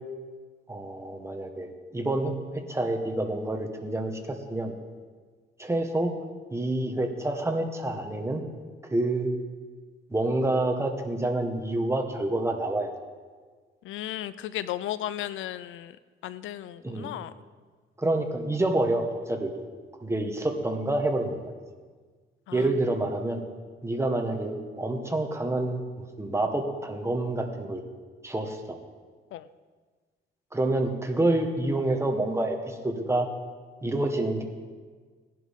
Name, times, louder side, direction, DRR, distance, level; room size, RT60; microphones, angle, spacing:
voice 1, 0.7-4.7 5.6-6.1 6.5-8.4 8.9-9.3 10.1-12.9 16.8-17.1 18.0-19.5 20.0-21.5 22.5-23.4 23.8-27.8 28.2-28.8 30.5-33.3 33.8-34.4, right 2 dB, 15° right, 4 dB, 1.5 m, -28 dB
voice 2, 13.8-16.0 16.2-17.3 22.5-22.7 29.3-29.5, left 12 dB, 80° left, 15 dB, 0.5 m, -35 dB
17.5 x 11.0 x 3.7 m, 1.5 s
cardioid pair, 90°, 20 cm